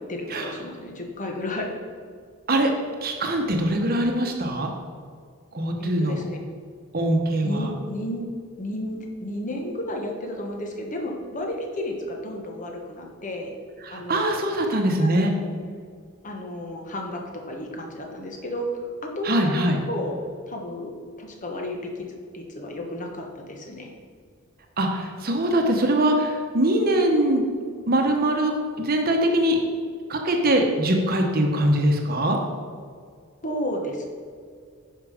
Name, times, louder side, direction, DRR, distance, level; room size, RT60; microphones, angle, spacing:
voice 1, 0.1-1.7 5.8-6.4 7.4-8.3 8.6-13.6 13.9-14.3 14.5-14.7 15.0-15.5 16.2-18.9 19.1-20.2 20.5-20.9 21.2-22.1 22.3-23.9 33.4-34.1, left 1 dB, 35° left, 2 dB, 1.3 m, -32 dB
voice 2, 3.0-4.7 5.5-6.2 6.9-7.7 13.8-15.3 19.2-19.8 24.8-27.4 27.9-28.5 28.8-29.6 30.1-32.4, right 1 dB, 45° right, 3 dB, 1.0 m, -22 dB
9.8 x 5.7 x 5.0 m, 2.1 s
head